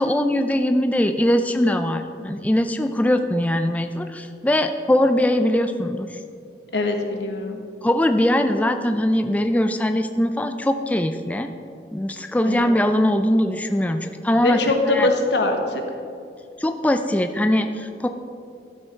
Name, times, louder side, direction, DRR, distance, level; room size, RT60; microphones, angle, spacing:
voice 1, 0.0-6.2 7.8-11.5 11.9-14.6 14.9-15.1 16.6-18.1, left 1 dB, 10° left, 7 dB, 0.3 m, -21 dB
voice 2, 6.7-7.6 12.4-12.7 14.4-15.8, left 2 dB, 85° left, 4 dB, 1.1 m, -22 dB
12.5 x 6.4 x 4.6 m, 2.5 s
head